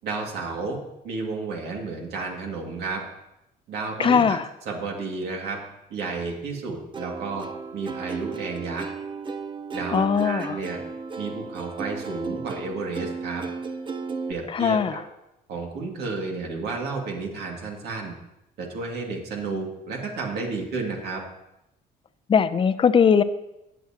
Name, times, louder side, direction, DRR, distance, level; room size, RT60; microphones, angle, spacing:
voice 1, 0.0-0.8 1.0-3.0 3.7-4.4 4.7-5.6 5.9-7.5 7.7-8.9 9.7-10.8 11.2-13.4 14.3-15.0 15.5-18.1 18.6-21.2, right 4 dB, 75° right, 0 dB, 2.3 m, -32 dB
voice 2, 4.0-4.5 9.9-10.6 14.5-15.0 22.3-23.2, left 6 dB, 30° left, 12 dB, 0.6 m, -20 dB
Plucked string instrument, 6.9-14.3, right 4 dB, 30° right, 0.7 m, -34 dB
20.0 x 7.2 x 2.9 m, 0.88 s
cardioid pair, 110°, 17 cm